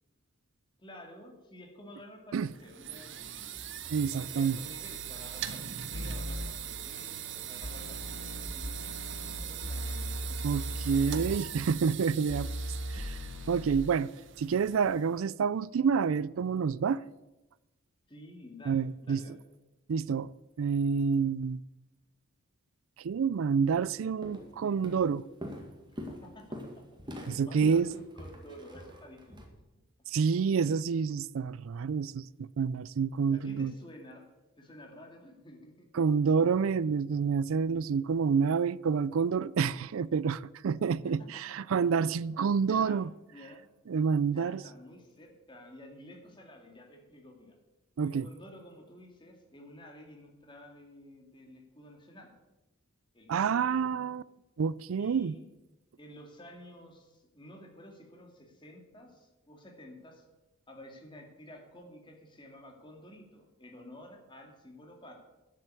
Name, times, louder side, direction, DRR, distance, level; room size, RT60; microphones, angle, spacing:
voice 1, 0.8-3.6 4.1-11.6 13.7-13.8 18.1-19.4 25.9-29.6 33.3-34.2 34.6-35.9 41.0-41.9 42.6-43.7 44.3-47.6 48.0-52.3 53.1-54.1 55.0-55.5 56.0-60.3 60.7-65.2, left 1 dB, 25° left, 2.3 m, -51 dB
sound 1, 2.4-15.2, right 9 dB, 60° right, 0.9 m, -41 dB
voice 2, 3.9-4.6 10.4-12.5 12.9-13.2 13.5-14.1 14.4-17.0 18.7-19.2 19.9-20.3 20.6-21.6 23.0-25.3 27.3-27.9 30.1-33.7 35.9-43.1 43.9-44.6 48.0-48.3 53.3-54.2 54.6-55.3, right 6 dB, 75° right, 0.4 m, -28 dB
sound 2, 5.9-6.5 7.6-11.4 12.3-13.7, equal, 80° left, 1.7 m, -37 dB
Walk footsteps, 23.9-24.0 24.2-24.6 24.8-29.5, equal, 20° right, 1.9 m, -43 dB
11.0 x 7.6 x 8.4 m
head